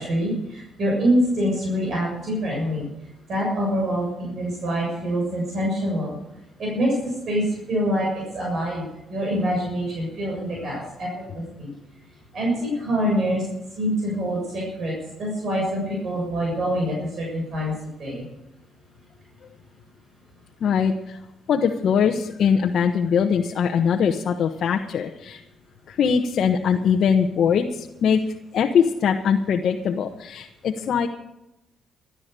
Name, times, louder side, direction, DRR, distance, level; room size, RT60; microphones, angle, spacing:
voice 1, 0.0-2.9 3.3-6.2 6.6-11.7 12.3-13.4 13.8-17.7 18.0-18.3, equal, 55° right, -3 dB, 7.3 m, -25 dB
voice 2, 20.6-21.2 21.5-25.4 25.9-31.1, left 7 dB, 65° left, 2 dB, 1.1 m, -22 dB
14.5 x 11.5 x 6.9 m, 0.89 s
cardioid pair, 90°, 0 cm